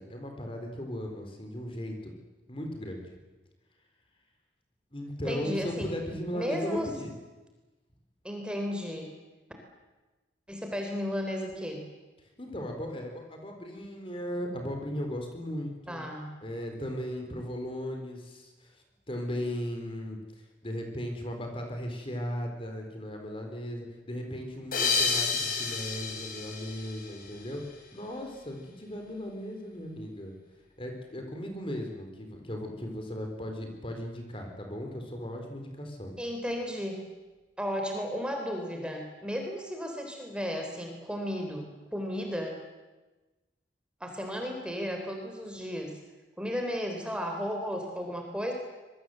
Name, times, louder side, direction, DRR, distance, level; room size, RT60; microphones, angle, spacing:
voice 1, 0.0-2.1 2.5-3.1 4.9-7.1 12.4-16.0 16.4-20.2 20.6-27.6 27.9-30.3 30.8-36.2, equal, 30° left, 3 dB, 4.2 m, -37 dB
voice 2, 5.3-5.9 6.3-6.9 8.2-9.1 10.5-11.9 15.9-16.4 36.2-37.0 37.6-42.6 44.0-46.0 46.4-48.5, equal, 5° right, 3 dB, 3.7 m, -34 dB
sound 1, 24.7-27.8, left 4 dB, 50° left, 6.2 m, -31 dB
25.5 x 22.5 x 7.9 m, 1.2 s
head